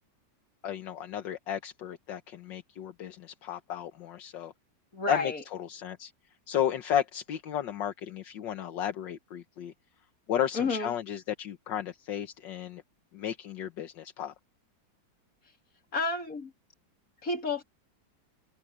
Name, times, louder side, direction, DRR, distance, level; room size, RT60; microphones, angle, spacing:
voice 1, 0.6-4.5 5.1-6.1 6.5-9.7 10.3-12.8 13.1-14.3, left 10 dB, 75° left, 1.7 m, -33 dB
voice 2, 4.9-5.4 10.5-10.9 15.9-16.5 17.2-17.6, left 3 dB, 45° left, 3.6 m, -30 dB
open air
omnidirectional pair, 2.0 m